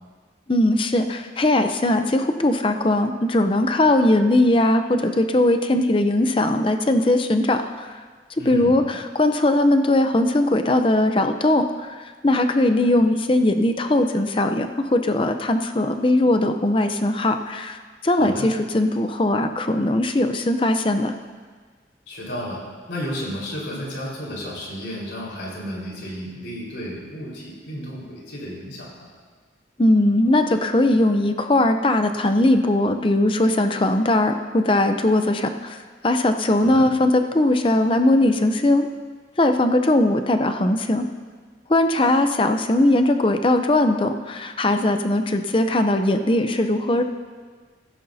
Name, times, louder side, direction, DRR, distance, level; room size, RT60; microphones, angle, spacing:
voice 1, 0.5-7.9 8.5-17.8 18.0-21.1 29.8-35.8 36.0-38.9 39.4-41.1 41.7-47.0, left 1 dB, 30° left, 7 dB, 0.6 m, -20 dB
voice 2, 8.4-8.8 18.1-18.5 22.1-22.6 22.9-29.1 36.6-36.8, equal, 85° left, -4 dB, 4.5 m, -32 dB
16.0 x 15.0 x 2.8 m, 1.5 s
head